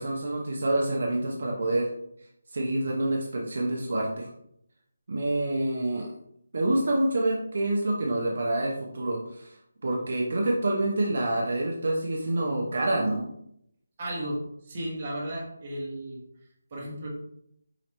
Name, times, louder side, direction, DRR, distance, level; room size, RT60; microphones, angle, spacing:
voice 1, 0.0-1.9 2.5-4.3 5.1-6.1 6.5-13.2, right 1 dB, 55° right, -2 dB, 0.8 m, -27 dB
voice 2, 14.0-14.4 14.6-16.2 16.7-17.1, right 1 dB, 30° right, -3 dB, 1.2 m, -34 dB
4.9 x 3.1 x 3.0 m, 0.73 s
hypercardioid pair, 175°, 0 cm